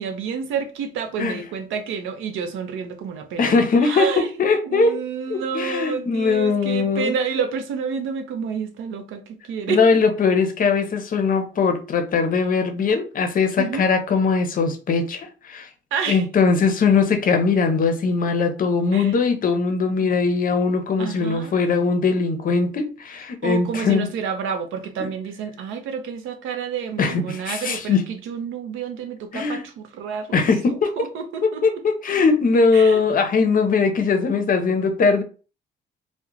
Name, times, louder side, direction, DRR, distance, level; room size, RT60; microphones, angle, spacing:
voice 1, 0.0-3.5 3.8-4.3 4.6-9.2 9.5-9.8 13.6-13.9 15.9-16.2 18.9-19.1 20.0-20.1 21.0-21.5 23.4-30.4 31.0-31.6 32.7-33.0, right 6 dB, 85° right, 0.5 m, -29 dB
voice 2, 3.4-5.0 5.3-7.2 9.7-15.7 16.1-24.1 25.0-25.1 27.0-28.0 29.3-29.7 30.3-31.1 31.4-35.2, left 4 dB, 45° left, 0.6 m, -20 dB
2.3 x 2.1 x 3.0 m
cardioid pair, 90°, 20 cm